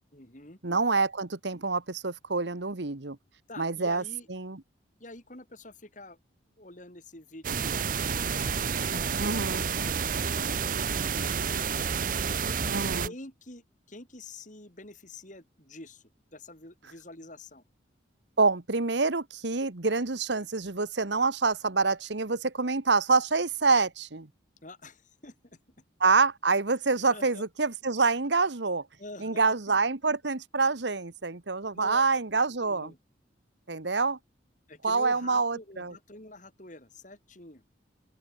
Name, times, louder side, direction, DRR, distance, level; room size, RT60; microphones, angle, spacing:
voice 1, 0.1-0.6 3.5-4.3 5.0-6.2 6.6-12.0 13.0-16.0 16.3-17.6 24.6-25.6 27.1-27.4 29.0-29.8 31.7-32.1 32.6-33.0 34.7-37.6, left 2 dB, 40° left, 4.8 m, -47 dB
voice 2, 0.6-3.2 3.6-4.0 4.3-4.6 9.2-9.7 12.7-13.1 18.4-24.3 26.0-28.9 29.2-32.9 33.7-34.2 34.8-35.9, right 4 dB, 70° right, 1.4 m, -26 dB
sound 1, 7.4-13.1, right 6 dB, 45° right, 0.8 m, -29 dB
open air
head